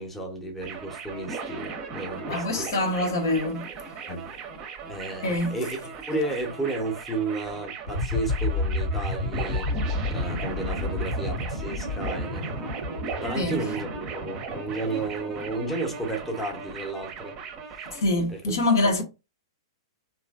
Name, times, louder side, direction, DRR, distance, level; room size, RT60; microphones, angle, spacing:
voice 1, 0.0-2.7 4.1-4.3 4.8-9.8 10.1-12.9 13.2-17.4 17.8-17.9 18.3-18.5 18.8-19.0, right 2 dB, 5° left, 0.8 m, -33 dB
sound 1, 0.6-18.0, right 5 dB, 25° right, 0.6 m, -37 dB
voice 2, 2.3-3.6 5.2-5.6 13.4-13.6 17.9-19.0, left 2 dB, 60° left, 0.8 m, -25 dB
sound 2, 7.9-16.7, left 2 dB, 80° left, 1.4 m, -31 dB
3.1 x 2.5 x 2.4 m
figure-of-eight pair, 105°, 2 cm